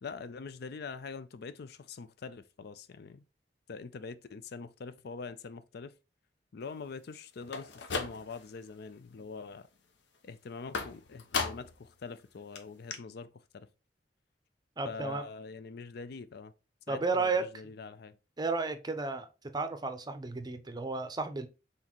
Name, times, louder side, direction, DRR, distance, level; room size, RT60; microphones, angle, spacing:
voice 1, 0.0-3.2 3.7-5.9 6.5-9.7 10.2-13.7 14.8-16.5 16.9-18.2, left 4 dB, 65° left, 0.4 m, -44 dB
sound 1, 7.4-8.6 9.0-9.5 10.7-11.9 12.2-12.3 12.6-12.7 12.9-13.0, left 4 dB, 80° left, 0.8 m, -36 dB
voice 2, 14.8-15.2 16.9-17.4 18.4-19.3 19.5-21.5, right 4 dB, 25° right, 0.6 m, -32 dB
4.1 x 4.0 x 3.0 m
head